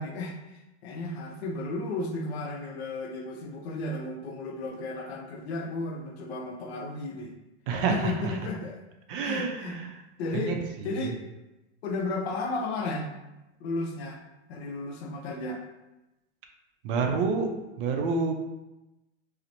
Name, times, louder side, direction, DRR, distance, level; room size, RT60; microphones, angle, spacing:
voice 1, 0.0-7.3 7.9-8.8 9.2-9.8 10.2-11.3 11.8-13.1 13.6-14.2 14.5-15.6, left 2 dB, 65° left, 3 dB, 0.6 m, -34 dB
voice 2, 7.7-8.1 9.1-9.9 10.3-11.1 16.8-17.5 17.8-18.3, right 4 dB, 50° right, 3 dB, 0.5 m, -28 dB
2.9 x 2.0 x 2.5 m, 0.96 s
hypercardioid pair, 130°, 36 cm